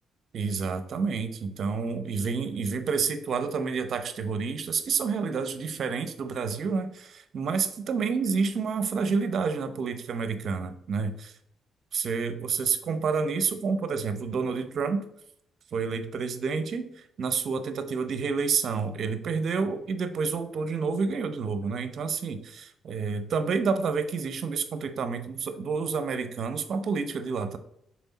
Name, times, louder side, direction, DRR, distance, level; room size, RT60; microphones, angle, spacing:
voice 1, 0.3-11.3 11.9-15.1 15.7-27.6, right 5 dB, 60° right, 9 dB, 0.8 m, -29 dB
6.1 x 4.4 x 4.1 m, 0.75 s
cardioid pair, 90°, 0 cm